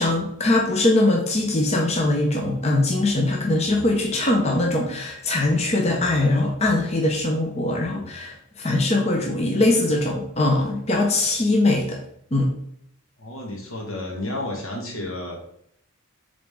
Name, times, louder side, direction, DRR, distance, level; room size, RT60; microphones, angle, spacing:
voice 1, 0.0-12.0 12.3-12.5, left 2 dB, 30° left, 0 dB, 0.7 m, -21 dB
voice 2, 13.2-15.4, left 1 dB, 80° left, 0 dB, 1.7 m, -31 dB
7.2 x 3.9 x 3.6 m, 0.71 s
head